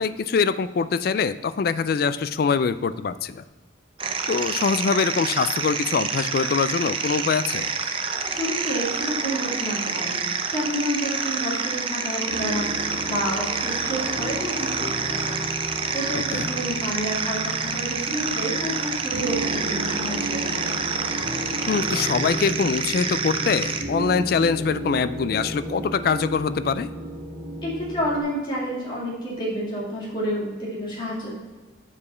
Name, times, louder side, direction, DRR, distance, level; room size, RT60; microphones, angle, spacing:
voice 1, 0.0-3.4 4.3-7.7 16.1-16.5 21.7-26.9, left 5 dB, 50° left, 14 dB, 0.3 m, -24 dB
sound 1, 4.0-23.8, right 5 dB, 30° right, 0.5 m, -28 dB
voice 2, 8.3-10.2 10.5-14.8 15.1-15.4 15.9-20.6 27.6-31.3, equal, 25° left, -6 dB, 2.4 m, -29 dB
sound 2, 12.3-28.2, equal, 50° right, 1.3 m, -34 dB
7.3 x 4.9 x 5.6 m, 1.3 s
head